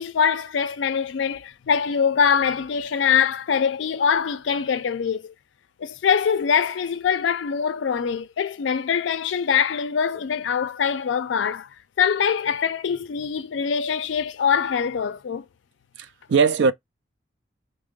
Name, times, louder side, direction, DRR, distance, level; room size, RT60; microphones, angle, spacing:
voice 1, 0.0-5.3 5.8-11.7 12.0-15.4, left 7 dB, 85° left, 0.4 m, -23 dB
voice 2, 16.0-16.7, right 5 dB, 70° right, 0.4 m, -20 dB
3.6 x 2.0 x 3.5 m
head